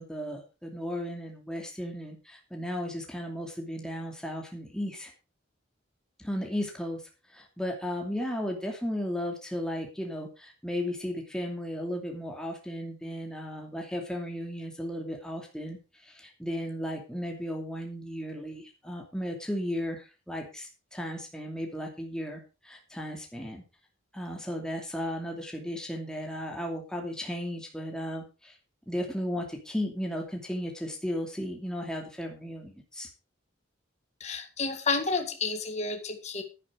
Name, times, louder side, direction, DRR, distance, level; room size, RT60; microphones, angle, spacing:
voice 1, 0.0-5.1 6.2-7.0 7.3-23.6 24.1-28.5 28.9-33.1, equal, 5° left, 1 dB, 2.6 m, -35 dB
voice 2, 34.2-36.4, left 4 dB, 35° left, 5 dB, 1.8 m, -30 dB
11.0 x 10.5 x 4.9 m, 0.31 s
head